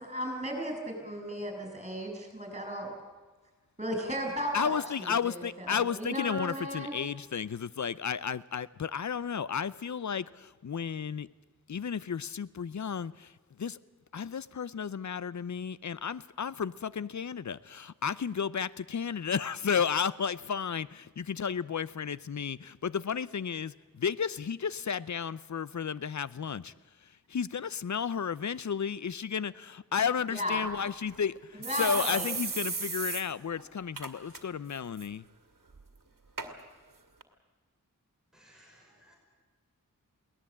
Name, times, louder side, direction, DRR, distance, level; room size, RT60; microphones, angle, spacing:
voice 1, 0.0-2.9 3.8-6.9 30.3-30.6 31.5-32.3, equal, 20° right, 2 dB, 7.2 m, -35 dB
voice 2, 4.5-11.3 11.7-13.8 14.1-26.7 27.0-35.2, left 7 dB, 55° left, 18 dB, 0.6 m, -33 dB
sound 1, 30.7-30.8 31.1-31.2 31.6-33.2 33.6-33.7 34.0-34.4 34.7-35.1 35.7-35.8 36.4-36.5 37.2-37.3, right 4 dB, 70° right, 2.0 m, -35 dB
voice 3, 38.3-39.2, equal, ahead, -1 dB, 5.5 m, -60 dB
22.5 x 17.5 x 8.6 m, 1.3 s
wide cardioid pair, 65°, 34 cm